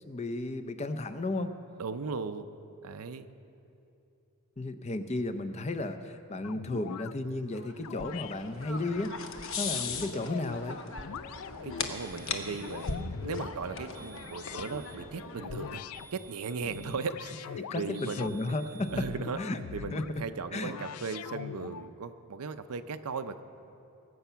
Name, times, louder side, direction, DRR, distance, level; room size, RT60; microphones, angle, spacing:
voice 1, 0.1-1.6 4.6-9.2 9.6-10.8 17.7-19.1 19.4-19.6 19.9-20.2 20.5-20.7, left 2 dB, 30° left, 10 dB, 0.5 m, -33 dB
voice 2, 1.8-2.6 2.8-3.3 11.6-12.9 13.2-15.8 16.1-18.3 18.9-19.4 19.7-23.4, right 5 dB, 85° right, 9 dB, 0.6 m, -37 dB
sound 1, 6.4-7.1 7.8-8.3 8.8-10.6 11.0-11.9 12.4-13.6 14.2-14.8 15.4-16.1 16.5-18.4 18.9-20.1 20.7-21.9, left 8 dB, 80° left, 0.3 m, -42 dB
sound 2, 7.5-16.1, left 4 dB, 60° left, 0.9 m, -39 dB
sound 3, 11.9-13.1 13.9-15.1 15.9-17.1 17.9-19.1, right 6 dB, 10° left, 1.0 m, -53 dB
20.0 x 8.1 x 5.7 m, 2.7 s
head